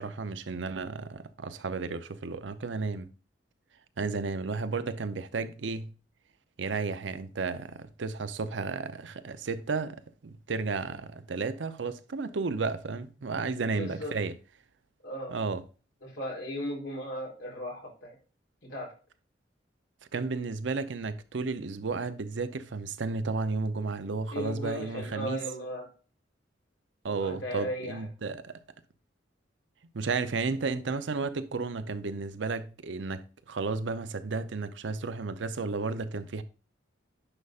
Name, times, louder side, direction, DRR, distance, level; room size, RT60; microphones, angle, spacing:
voice 1, 0.0-3.1 4.0-5.9 6.6-14.3 15.3-15.6 20.1-25.4 27.0-28.5 29.9-36.4, right 4 dB, 75° right, 0.6 m, -33 dB
voice 2, 13.7-14.1 15.0-15.3 16.0-18.2 18.6-18.9 24.3-25.9 27.1-28.0, equal, 90° left, 3.5 m, -36 dB
9.9 x 5.5 x 2.4 m
head